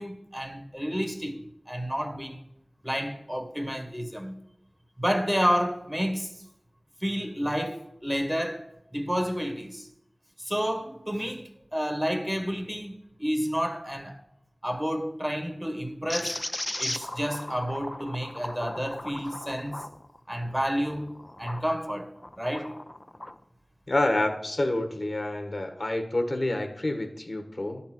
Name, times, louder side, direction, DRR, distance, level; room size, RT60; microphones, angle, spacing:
voice 1, 0.0-2.4 2.8-4.4 5.0-6.3 7.0-9.9 10.4-14.2 14.6-16.4 16.8-19.9 20.3-21.1 21.4-22.1 22.4-22.8, equal, 10° right, 1.6 m, -30 dB
sound 1, 16.1-21.7 22.2-23.4, left 1 dB, 30° left, 0.5 m, -37 dB
voice 2, 23.9-27.8, left 1 dB, 60° left, 1.3 m, -28 dB
11.5 x 4.2 x 7.7 m
wide cardioid pair, 45°, 0 cm